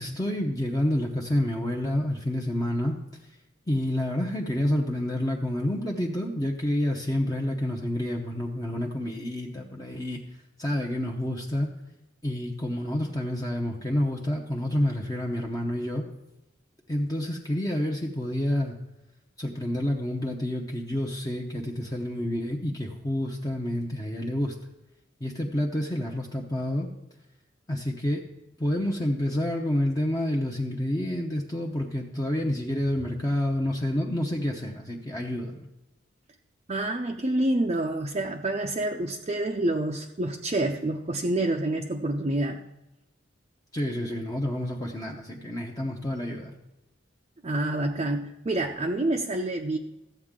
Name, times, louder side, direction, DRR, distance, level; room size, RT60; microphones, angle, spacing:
voice 1, 0.0-3.0 3.7-10.2 10.6-11.7 12.2-16.0 16.9-18.8 19.4-24.5 25.2-26.9 27.7-28.2 28.6-35.7 43.7-46.5, left 1 dB, 20° left, 0 dB, 0.8 m, -28 dB
voice 2, 36.7-42.6 47.4-49.8, right 1 dB, 35° right, 2 dB, 0.6 m, -27 dB
14.5 x 8.0 x 3.7 m, 0.95 s
head